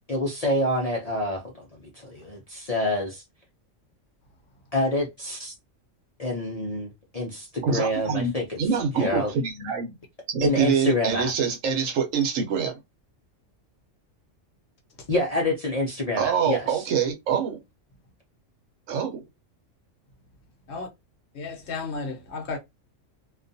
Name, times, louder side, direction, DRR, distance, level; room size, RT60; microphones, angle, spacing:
voice 1, 0.1-3.2 4.7-5.5 6.2-8.6 8.9-9.3 10.4-11.3 15.1-16.9, left 1 dB, 45° left, 0.5 m, -27 dB
voice 2, 7.6-9.9 10.3-12.7 16.2-17.6 18.9-19.2, right 6 dB, 80° right, 1.1 m, -25 dB
voice 3, 21.3-22.6, left 3 dB, 65° left, 0.9 m, -33 dB
2.5 x 2.3 x 2.6 m
omnidirectional pair, 1.3 m